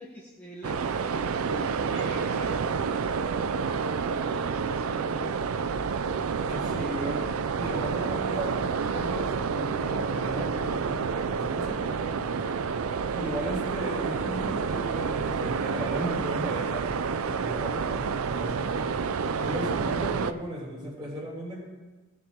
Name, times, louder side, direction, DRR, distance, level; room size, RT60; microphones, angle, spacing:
voice 1, 0.0-5.5 6.8-7.1 19.6-20.2, left 1 dB, 10° left, -5 dB, 1.1 m, -45 dB
sound 1, 0.6-20.3, right 5 dB, 75° right, 0.4 m, -29 dB
voice 2, 6.4-7.2 7.5-12.4 13.1-18.9 19.4-21.6, right 1 dB, 20° right, -5 dB, 3.7 m, -36 dB
17.0 x 7.1 x 3.7 m, 1.2 s
head